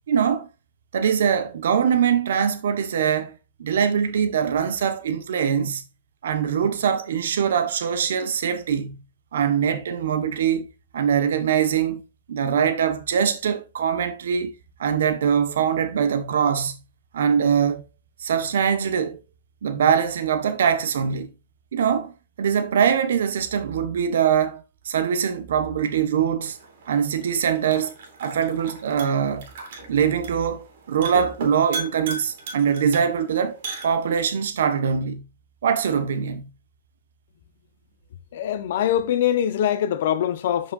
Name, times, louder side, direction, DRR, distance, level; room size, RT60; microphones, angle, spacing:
voice 1, 0.1-0.5 0.9-3.3 3.6-5.8 6.2-9.0 9.3-10.7 10.9-12.0 12.3-14.5 14.8-16.8 17.1-17.8 18.2-19.2 19.6-21.3 21.7-22.1 22.4-26.6 26.9-27.9 28.2-29.5 29.9-33.6 33.8-35.2 35.6-36.5, right 7 dB, 75° right, 1.3 m, -22 dB
sound 1, 26.4-34.4, right 3 dB, 60° right, 3.2 m, -38 dB
voice 2, 38.3-40.7, left 10 dB, 60° left, 1.0 m, -23 dB
7.7 x 5.7 x 2.6 m
hypercardioid pair, 160°, 0 cm